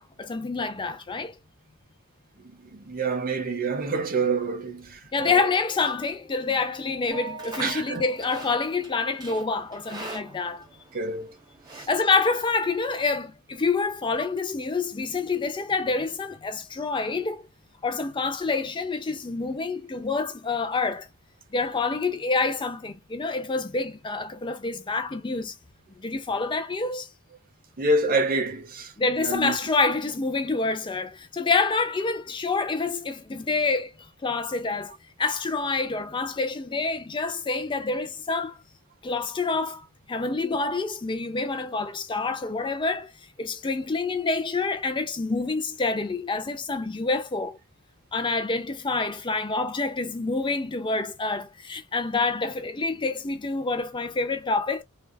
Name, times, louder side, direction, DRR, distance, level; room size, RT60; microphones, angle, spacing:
voice 1, 0.0-1.3 5.1-10.6 11.8-17.5 17.8-21.1 21.5-25.6 26.0-27.1 29.0-33.9 34.2-34.9 35.2-38.6 39.0-43.1 43.4-47.6 48.1-54.8, left 3 dB, 20° left, 0.5 m, -27 dB
voice 2, 2.4-5.5 7.6-8.0 10.9-11.4 11.7-11.9 27.8-28.9 29.2-29.6, right 2 dB, 40° right, 0.8 m, -27 dB
sound 1, 5.2-9.4, right 3 dB, 65° right, 1.3 m, -43 dB
Livestock farm animals working animals, 7.1-12.8, right 2 dB, 20° right, 1.1 m, -44 dB
3.3 x 2.4 x 2.3 m
head